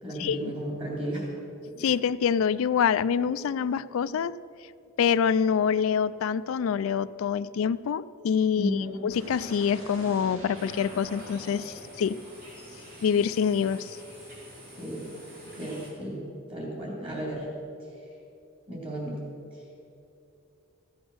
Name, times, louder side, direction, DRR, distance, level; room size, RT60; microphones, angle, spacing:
voice 1, 0.0-1.3 8.6-8.9 14.8-15.1 15.5-17.5 18.7-19.2, equal, 25° right, -3 dB, 3.4 m, -33 dB
voice 2, 1.8-4.4 5.0-12.2 13.0-14.0, left 7 dB, 75° left, 16 dB, 0.3 m, -26 dB
sound 1, 9.1-13.1, equal, 70° right, 2.4 m, -46 dB
sound 2, 10.5-15.9, equal, 40° right, 3.2 m, -48 dB
15.0 x 8.0 x 6.3 m, 2.7 s
head